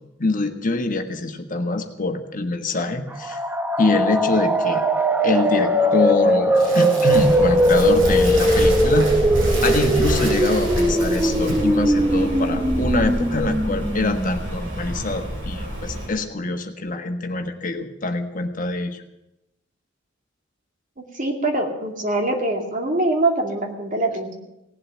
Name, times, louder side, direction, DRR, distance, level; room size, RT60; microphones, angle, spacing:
voice 1, 0.2-3.4 3.8-4.8 5.2-9.1 9.6-19.0, left 2 dB, 45° left, 6 dB, 1.4 m, -24 dB
sound 1, 3.1-14.8, right 1 dB, 10° right, 0.8 m, -20 dB
Crumpling crinkling, 6.5-11.8, right 2 dB, 85° right, 5.6 m, -33 dB
Rain, 7.1-16.1, equal, 70° right, 6.2 m, -27 dB
voice 2, 21.0-24.3, right 2 dB, 45° right, 2 dB, 2.5 m, -23 dB
17.5 x 7.8 x 9.2 m, 0.90 s
head